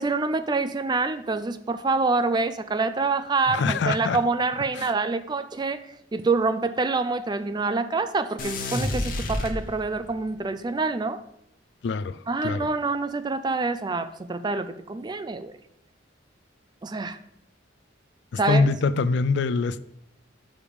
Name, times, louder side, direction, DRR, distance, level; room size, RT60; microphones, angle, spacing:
voice 1, 0.0-11.2 12.3-15.5 16.8-17.2 18.4-18.7, right 3 dB, 20° right, 0.4 m, -26 dB
voice 2, 3.5-4.2 4.8-4.9 11.8-12.7 18.5-19.8, left 4 dB, 65° left, 0.3 m, -24 dB
sound 1, 8.4-10.2, left 1 dB, 45° left, 1.0 m, -29 dB
7.0 x 5.1 x 4.9 m
head